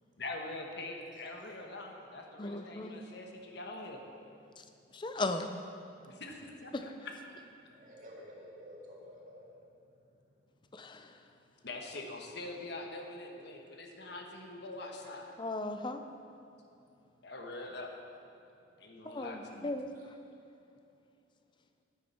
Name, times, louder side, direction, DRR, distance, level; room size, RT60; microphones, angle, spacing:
voice 1, 0.2-4.0 6.0-7.1 11.6-15.4 17.2-17.9 18.8-19.7, left 2 dB, 60° left, 2 dB, 1.2 m, -44 dB
voice 2, 2.4-2.9 4.9-5.5 6.7-6.8 10.7-11.1 15.4-16.0 19.0-19.9, left 2 dB, 25° left, 7 dB, 0.5 m, -36 dB
voice 3, 7.7-9.5 19.9-20.0, equal, 45° right, -4 dB, 2.1 m, -51 dB
11.5 x 10.0 x 4.3 m, 2.6 s
head